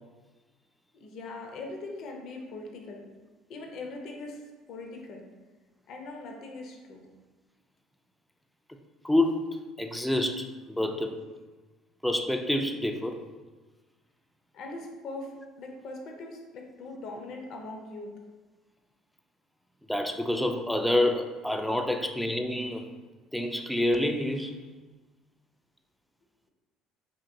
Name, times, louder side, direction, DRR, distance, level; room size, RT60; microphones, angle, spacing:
voice 1, 0.9-3.0 3.5-4.4 4.7-5.2 5.9-7.0 14.5-15.3 15.6-18.1, left 2 dB, 60° left, 1 dB, 0.5 m, -41 dB
voice 2, 9.0-11.2 12.0-13.2 19.9-22.9 23.3-24.5, left 1 dB, 5° left, 5 dB, 0.3 m, -28 dB
2.8 x 2.8 x 2.6 m, 1.3 s
supercardioid pair, 75°, 0 cm